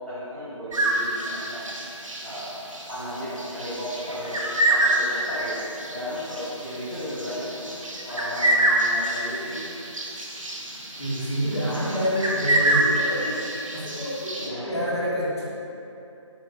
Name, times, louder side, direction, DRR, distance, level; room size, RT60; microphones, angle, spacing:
voice 1, 0.1-1.6 2.2-2.6 2.9-5.5 5.9-7.7 8.1-9.6 14.4-14.7, equal, 15° right, -18 dB, 1.2 m, -34 dB
sound 1, 0.7-14.5, right 1 dB, 80° right, 0.5 m, -27 dB
voice 2, 11.0-13.4 13.7-15.4, equal, 55° left, -9 dB, 1.0 m, -27 dB
3.0 x 2.4 x 2.8 m, 2.9 s
figure-of-eight pair, 155°, 16 cm